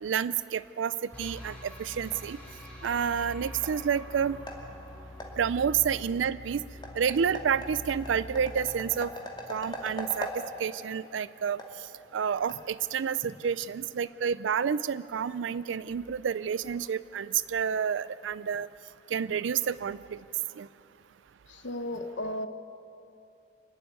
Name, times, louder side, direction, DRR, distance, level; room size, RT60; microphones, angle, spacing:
voice 1, 0.0-0.9 1.2-2.4 2.8-4.4 5.4-6.6 7.0-9.1 9.5-11.6 12.1-18.7 19.1-20.2 20.6-20.7, right 7 dB, 85° right, 17 dB, 0.4 m, -29 dB
sound 1, 1.1-10.2, left 1 dB, 5° left, 3.3 m, -45 dB
sound 2, 1.6-13.3, left 1 dB, 25° left, 2.4 m, -44 dB
voice 2, 21.5-22.5, left 1 dB, 70° left, 8 dB, 1.0 m, -34 dB
26.0 x 11.5 x 9.5 m, 2.7 s
head